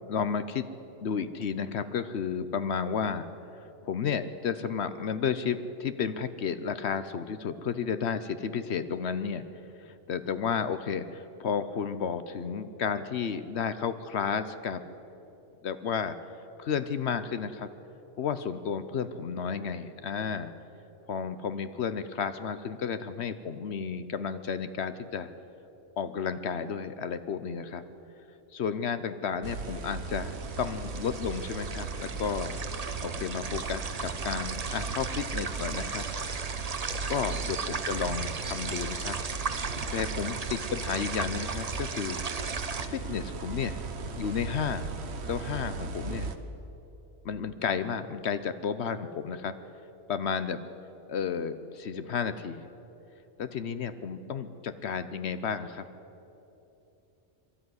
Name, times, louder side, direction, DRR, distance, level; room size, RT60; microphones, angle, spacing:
voice 1, 0.1-0.7 1.0-3.2 3.8-9.4 9.8-14.8 15.6-16.2 16.6-17.7 18.2-20.5 21.1-25.3 26.0-27.8 28.5-32.5 33.0-36.1 37.1-39.2 39.9-42.6 42.9-43.8 44.1-44.9 45.3-46.3 47.2-49.5 50.1-50.6 51.1-52.7 53.4-55.8, left 6 dB, 70° left, 11 dB, 1.0 m, -32 dB
sound 1, 29.4-46.4, right 4 dB, 70° right, 1.3 m, -37 dB
sound 2, 30.1-42.9, right 4 dB, 35° right, 0.9 m, -37 dB
22.5 x 13.0 x 9.6 m, 3.0 s
omnidirectional pair, 1.2 m